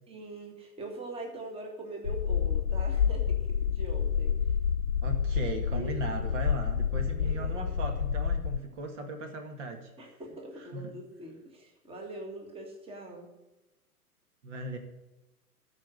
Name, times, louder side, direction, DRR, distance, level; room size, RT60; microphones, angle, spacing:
voice 1, 0.1-4.3 5.7-6.2 7.2-7.7 10.0-13.3, right 1 dB, 10° right, 1 dB, 1.9 m, -43 dB
sound 1, 2.0-8.6, left 7 dB, 75° left, 0.7 m, -29 dB
voice 2, 5.0-9.9 10.6-10.9 14.4-14.8, right 2 dB, 50° right, 5 dB, 2.1 m, -37 dB
14.0 x 5.2 x 7.5 m, 1.0 s
figure-of-eight pair, 105°, 45 cm